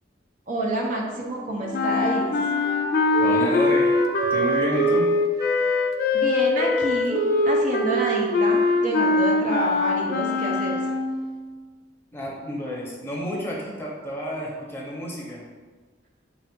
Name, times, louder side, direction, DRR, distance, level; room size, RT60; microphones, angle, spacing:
voice 1, 0.5-2.3 6.1-10.8, right 2 dB, 45° right, -1 dB, 0.6 m, -28 dB
Wind instrument woodwind instrument, 1.0-5.1 5.4-9.8, right 1 dB, 20° right, 0.8 m, -33 dB
sound 1, 1.7-11.3, left 2 dB, 55° left, 0.3 m, -22 dB
voice 2, 3.2-3.9 4.3-5.1 12.1-15.4, equal, 15° left, -3 dB, 0.7 m, -30 dB
4.1 x 2.4 x 4.3 m, 1.4 s
head